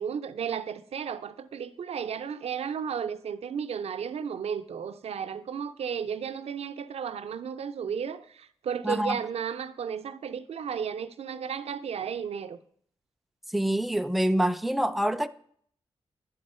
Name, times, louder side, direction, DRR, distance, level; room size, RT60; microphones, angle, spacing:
voice 1, 0.0-12.6, right 7 dB, 75° right, 0.5 m, -34 dB
voice 2, 8.8-9.2 13.5-15.3, right 1 dB, ahead, 0.3 m, -26 dB
10.0 x 3.9 x 5.4 m
wide cardioid pair, 125°, 11 cm